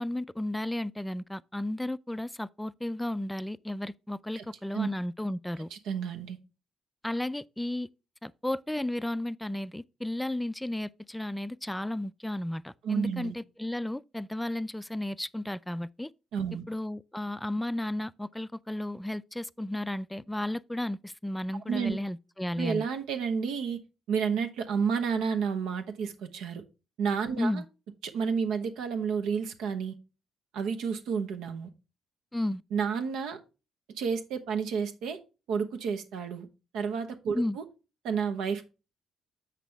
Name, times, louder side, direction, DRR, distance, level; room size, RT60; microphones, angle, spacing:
voice 1, 0.0-5.7 7.0-7.9 8.2-16.1 16.7-22.9 27.4-27.6 32.3-32.6 37.3-37.6, left 1 dB, 5° left, 0.3 m, -33 dB
voice 2, 5.7-6.4 12.8-13.3 16.3-16.6 21.7-22.0 22.6-23.8 24.1-26.6 27.0-27.6 28.0-29.9 30.5-31.7 32.7-33.4 34.0-35.2 35.5-36.5 36.7-37.6 38.0-38.6, right 6 dB, 90° right, 1.0 m, -30 dB
7.4 x 6.1 x 3.4 m
cardioid pair, 90°, 0 cm